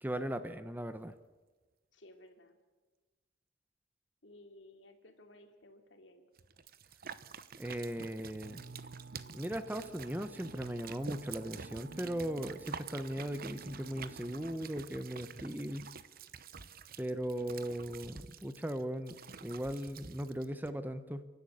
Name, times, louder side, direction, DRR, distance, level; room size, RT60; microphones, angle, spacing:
voice 1, 0.0-1.1 7.5-8.6 9.3-15.9 17.0-21.2, right 1 dB, 10° right, 11 dB, 0.8 m, -38 dB
voice 2, 1.9-2.6 4.2-6.2, left 1 dB, 70° left, 5 dB, 2.8 m, -57 dB
sound 1, 6.4-20.7, right 6 dB, 50° right, 0.9 m, -49 dB
sound 2, 8.4-14.6, right 3 dB, 85° right, 0.7 m, -53 dB
30.0 x 11.5 x 8.5 m, 1.3 s
head